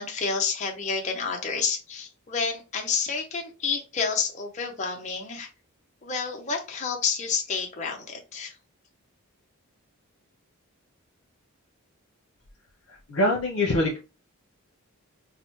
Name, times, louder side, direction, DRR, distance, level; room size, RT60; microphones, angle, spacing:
voice 1, 0.0-5.5 6.0-8.5, left 5 dB, 30° left, 2 dB, 0.6 m, -29 dB
voice 2, 13.1-14.0, left 1 dB, 70° left, -4 dB, 0.9 m, -23 dB
4.6 x 2.1 x 3.0 m, 0.31 s
head